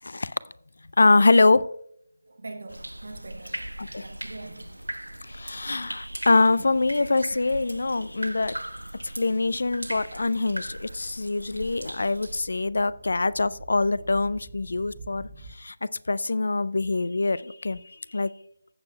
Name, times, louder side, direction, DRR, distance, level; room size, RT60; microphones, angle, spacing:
voice 1, 0.0-0.3 1.0-1.7 3.8-4.1 5.3-8.6 9.0-15.3 15.6-15.7 16.1-18.3, left 3 dB, 55° left, 0.3 m, -24 dB
voice 2, 2.2-3.7 4.0-4.8, right 2 dB, 55° right, 1.1 m, -42 dB
sound 1, 2.7-12.4, right 1 dB, 80° right, 0.4 m, -39 dB
sound 2, 8.8-15.5, right 2 dB, 25° right, 1.5 m, -50 dB
15.5 x 6.8 x 2.2 m
figure-of-eight pair, 155°, 0 cm